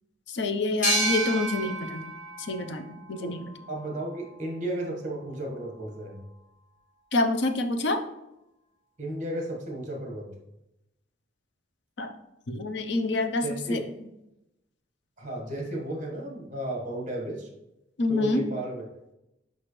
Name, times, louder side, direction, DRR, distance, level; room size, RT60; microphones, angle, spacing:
voice 1, 0.3-2.1 2.5-3.4 7.1-8.0 12.0-12.1 12.5-13.4 13.7-13.8 18.0-18.4, left 2 dB, 65° left, 7 dB, 0.6 m, -27 dB
sound 1, 0.8-4.2, right 1 dB, 40° left, 2.0 m, -31 dB
voice 2, 3.7-6.2 9.0-10.3 13.4-13.9 15.2-17.5 18.1-18.9, right 1 dB, 40° right, 0 dB, 1.4 m, -34 dB
6.0 x 5.4 x 3.2 m, 0.89 s
head